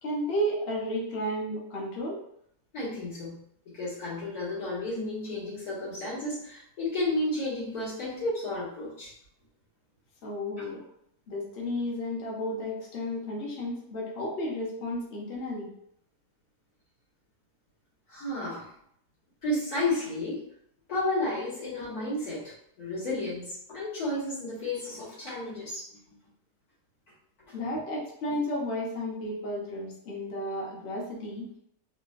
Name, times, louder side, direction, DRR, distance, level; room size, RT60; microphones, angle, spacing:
voice 1, 0.0-2.2 10.2-10.8 11.3-15.7 27.5-31.4, equal, 50° left, -4 dB, 0.9 m, -33 dB
voice 2, 2.7-3.4 3.7-9.1 10.6-10.7 18.1-18.7 19.4-20.4 20.9-25.9 28.3-28.4, left 2 dB, 85° left, -9 dB, 2.0 m, -32 dB
3.7 x 2.2 x 2.5 m, 0.71 s
omnidirectional pair, 1.6 m